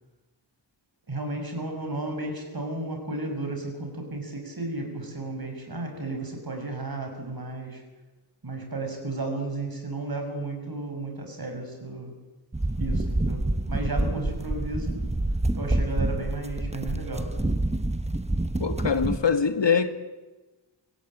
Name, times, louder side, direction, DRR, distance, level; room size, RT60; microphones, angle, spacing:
voice 1, 1.1-7.8 8.4-12.1 12.8-15.0 15.5-17.6, right 2 dB, 50° right, 4 dB, 6.7 m, -33 dB
sound 1, 12.5-19.2, right 1 dB, 15° right, 1.1 m, -27 dB
voice 2, 18.6-19.9, left 6 dB, 70° left, 8 dB, 1.9 m, -23 dB
26.5 x 16.0 x 8.8 m, 1.2 s
wide cardioid pair, 90°, 45 cm